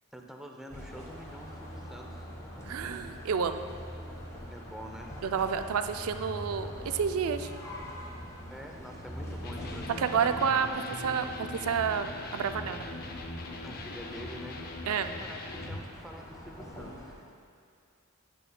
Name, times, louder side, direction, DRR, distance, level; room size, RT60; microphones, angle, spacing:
voice 1, 0.1-2.3 4.5-5.2 8.5-10.3 13.6-14.6 15.2-17.1, equal, ahead, 1 dB, 0.5 m, -46 dB
sound 1, 0.7-17.2, equal, 15° left, 1.1 m, -44 dB
voice 2, 2.7-3.7 5.2-7.5 10.0-12.9 14.9-15.1, right 6 dB, 75° right, 8 dB, 0.4 m, -30 dB
Electric guitar, 9.4-15.8, left 2 dB, 45° left, 0.6 m, -41 dB
17.0 x 6.7 x 2.2 m, 2.3 s
head